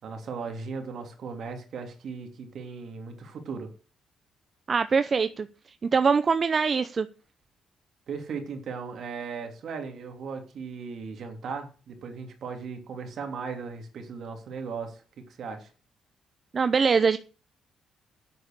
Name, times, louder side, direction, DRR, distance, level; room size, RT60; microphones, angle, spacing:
voice 1, 0.0-3.7 8.1-15.7, right 5 dB, 65° right, 5 dB, 3.1 m, -37 dB
voice 2, 4.7-5.5 5.9-7.1 16.5-17.2, right 5 dB, 40° right, 12 dB, 0.7 m, -23 dB
9.7 x 8.0 x 6.8 m, 0.36 s
cardioid pair, 90°, 0 cm